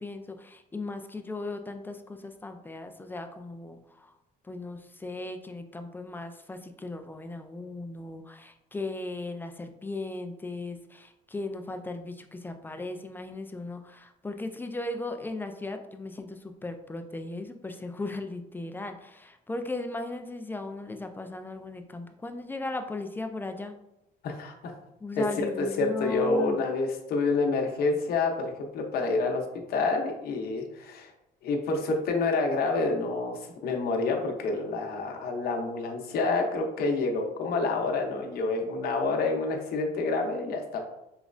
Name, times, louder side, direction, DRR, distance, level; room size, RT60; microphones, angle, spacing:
voice 1, 0.0-4.1 4.4-23.7 25.0-26.6, left 2 dB, 10° left, 6 dB, 0.3 m, -37 dB
voice 2, 24.2-24.7 25.2-25.3 25.6-31.1 31.4-40.8, left 3 dB, 65° left, 2 dB, 0.8 m, -28 dB
4.9 x 3.1 x 2.5 m, 0.86 s
cardioid pair, 110°, 17 cm